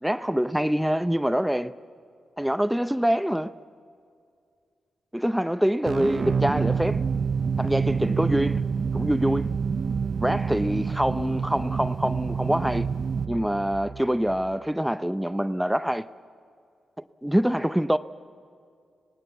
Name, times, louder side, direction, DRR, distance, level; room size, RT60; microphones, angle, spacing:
voice 1, 0.0-1.7 2.4-3.5 5.1-7.0 7.6-8.6 8.9-9.5 10.2-12.9 13.3-16.1 17.2-18.0, equal, 5° right, 0.6 m, -25 dB
sound 1, 5.9-14.5, right 5 dB, 55° right, 0.5 m, -27 dB
26.0 x 18.5 x 7.0 m
cardioid pair, 55°, 0 cm